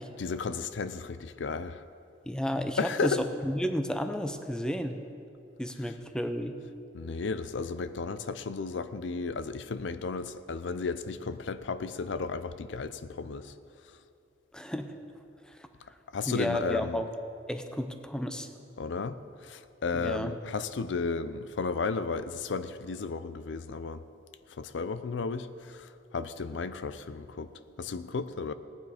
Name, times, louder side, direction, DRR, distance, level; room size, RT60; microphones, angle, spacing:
voice 1, 0.2-1.8 2.8-3.3 6.9-13.5 16.1-17.0 18.8-24.0 24.5-27.5 27.8-28.5, left 4 dB, 80° left, 13 dB, 0.5 m, -34 dB
voice 2, 2.3-3.2 3.4-5.0 5.6-6.5 14.5-14.9 15.5-15.6 16.3-17.1 17.5-18.5 19.9-20.3, equal, 5° left, 7 dB, 0.6 m, -32 dB
17.5 x 9.4 x 4.9 m, 2.6 s
head